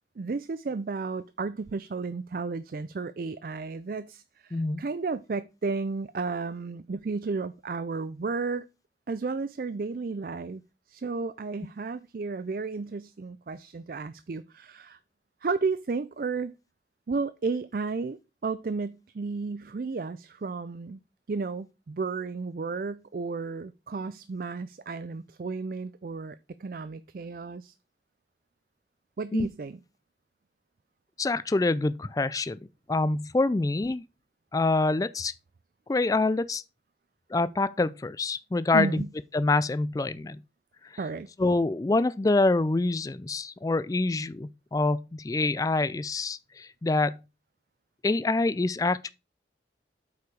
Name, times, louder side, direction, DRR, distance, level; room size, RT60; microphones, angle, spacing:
voice 1, 0.2-8.7 9.1-10.6 10.9-15.0 15.4-16.5 17.1-21.0 21.3-27.7 29.2-29.8 38.7-39.1 41.0-41.3, right 4 dB, 50° right, 0.4 m, -33 dB
voice 2, 4.5-4.8 29.3-29.5 31.2-32.6 32.9-34.0 34.5-35.3 35.9-36.6 37.3-39.0 39.3-40.4 41.4-47.2 48.0-49.1, left 2 dB, 20° left, 0.3 m, -26 dB
8.2 x 4.8 x 4.7 m
head